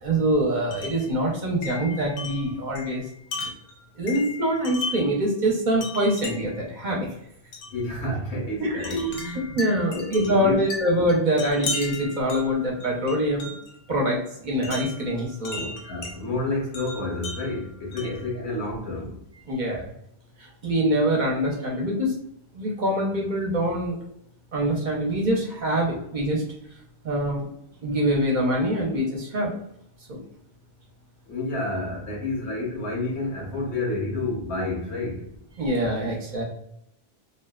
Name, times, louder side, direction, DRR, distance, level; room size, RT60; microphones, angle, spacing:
voice 1, 0.0-3.0 4.0-7.1 8.6-13.5 13.9-15.7 18.0-18.1 19.5-19.9 20.6-22.1 22.5-24.0 24.5-26.4 27.0-27.5 27.8-29.6 30.1-30.2 35.6-36.4, right 1 dB, 50° right, -2 dB, 0.7 m, -24 dB
Wind chime, 0.7-1.1 1.6-5.2 5.8-6.6 7.5-7.8 8.8-13.8 14.6-16.2 16.7-18.3, left 3 dB, 65° left, 0.7 m, -36 dB
voice 2, 7.7-9.5 9.9-10.7 15.6-19.2 31.3-35.3, left 2 dB, 85° left, -1 dB, 1.1 m, -30 dB
2.6 x 2.1 x 2.2 m, 0.73 s
omnidirectional pair, 1.1 m